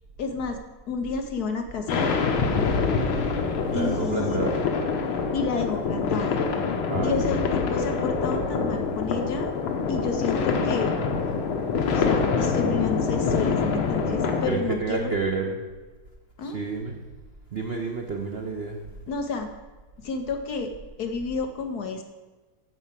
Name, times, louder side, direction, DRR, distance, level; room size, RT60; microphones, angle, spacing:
voice 1, 0.2-0.6 0.9-2.1 3.7-4.4 5.3-6.4 7.0-9.5 9.9-10.9 11.9-15.1 16.4-16.6 19.1-19.5 20.0-20.7 21.0-22.0, left 4 dB, 65° left, 5 dB, 1.0 m, -30 dB
sound 1, 1.9-14.5, left 5 dB, 90° left, 1.8 m, -25 dB
voice 2, 3.7-4.6 6.9-7.4 14.5-15.6 16.4-17.0 17.5-18.8, right 4 dB, 70° right, 3 dB, 0.5 m, -29 dB
9.8 x 4.7 x 7.2 m, 1.3 s
omnidirectional pair, 2.2 m